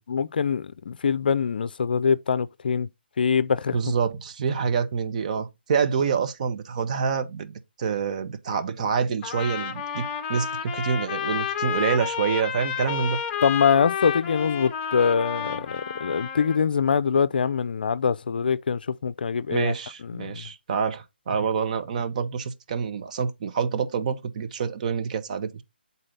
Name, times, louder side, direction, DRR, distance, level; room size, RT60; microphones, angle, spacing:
voice 1, 0.1-2.9 3.2-3.8 13.4-19.7 20.0-20.4, left 6 dB, 55° left, 0.4 m, -24 dB
voice 2, 3.7-13.2 19.5-25.6, right 6 dB, 40° right, 1.0 m, -27 dB
Trumpet, 9.2-16.6, left 8 dB, 20° left, 0.8 m, -30 dB
8.7 x 4.1 x 3.9 m
figure-of-eight pair, 145°, 6 cm